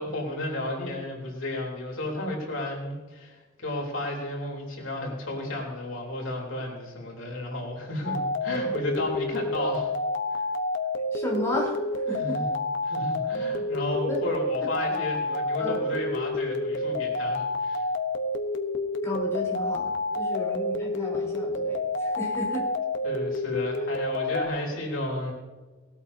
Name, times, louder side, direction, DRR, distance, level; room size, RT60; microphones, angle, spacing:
voice 1, 0.0-9.9 10.3-10.5 12.2-12.5 12.8-17.8 23.0-25.3, left 1 dB, 85° left, -1 dB, 3.6 m, -33 dB
sound 1, 8.0-24.5, left 2 dB, 65° left, 1.1 m, -29 dB
voice 2, 11.1-12.4 14.0-14.2 15.6-15.8 19.0-19.9 20.1-22.6, equal, 15° left, -4 dB, 3.9 m, -33 dB
19.0 x 13.0 x 2.8 m, 1.3 s
head